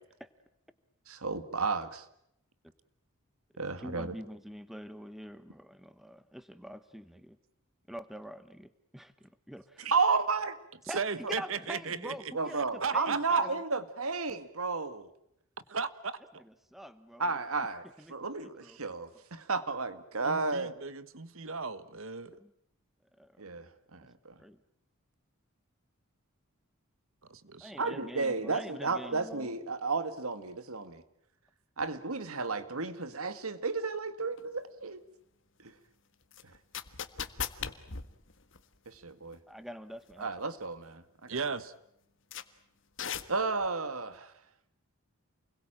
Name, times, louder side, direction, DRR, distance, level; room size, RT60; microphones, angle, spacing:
voice 1, 1.1-2.1 3.6-4.2 9.8-10.6 11.2-11.3 12.3-15.1 17.2-17.8 18.1-20.7 23.4-24.4 27.8-31.0 31.8-35.0 35.6-35.7 36.4-36.5 38.9-39.4 40.2-41.4 43.3-44.3, right 4 dB, 85° right, 12 dB, 1.9 m, -33 dB
voice 2, 3.8-7.4 7.9-9.9 10.9-13.6 16.4-17.4 18.0-18.8 22.4-22.5 23.2-23.4 24.4-24.6 27.6-29.5 39.5-40.3, equal, ahead, 12 dB, 1.1 m, -45 dB
voice 3, 10.9-12.3 12.8-13.4 15.7-16.4 20.2-22.4 27.3-27.7 41.3-41.7, right 5 dB, 70° right, 15 dB, 1.4 m, -36 dB
sound 1, 34.4-34.5 36.3-39.0 39.3-39.4 40.1-40.4 40.7-40.8 41.4-41.5 42.3-42.4 43.0-43.7, left 7 dB, 60° left, 1.6 m, -38 dB
29.0 x 21.5 x 9.0 m, 0.76 s
head